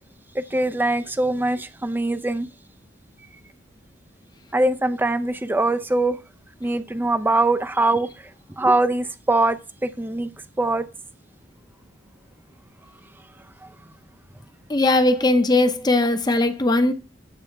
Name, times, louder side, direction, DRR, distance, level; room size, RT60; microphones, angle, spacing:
voice 1, 0.3-2.5 4.5-6.2 6.6-8.1 8.6-10.3 10.6-10.9, right 2 dB, 10° right, 0.4 m, -22 dB
voice 2, 14.7-16.9, left 2 dB, 20° left, 0.7 m, -19 dB
8.6 x 3.4 x 5.8 m
head